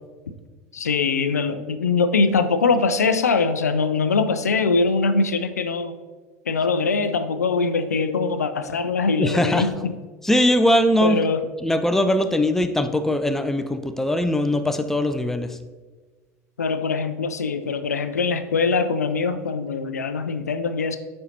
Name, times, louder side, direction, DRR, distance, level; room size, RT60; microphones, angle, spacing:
voice 1, 0.7-5.9 6.5-9.9 11.0-11.4 16.6-21.0, left 4 dB, 80° left, 10 dB, 0.4 m, -22 dB
voice 2, 9.2-9.7 10.2-11.2 11.6-15.6, left 1 dB, 5° left, 9 dB, 0.4 m, -21 dB
9.4 x 4.3 x 2.7 m, 1.4 s
figure-of-eight pair, 75°, 8 cm